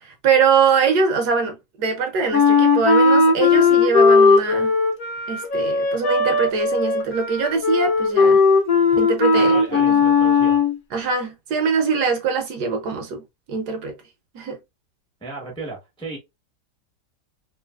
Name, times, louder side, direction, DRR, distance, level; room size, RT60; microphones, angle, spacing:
voice 1, 0.0-4.7 5.3-8.4 8.9-9.6 9.9-10.0 10.9-13.2 13.5-13.9 14.3-14.6, right 5 dB, 70° right, 1.1 m, -22 dB
Wind instrument woodwind instrument, 2.3-10.7, left 4 dB, 60° left, 1.0 m, -17 dB
voice 2, 9.3-10.6 15.2-16.2, right 3 dB, 5° left, 0.5 m, -35 dB
3.1 x 2.7 x 2.2 m
omnidirectional pair, 1.9 m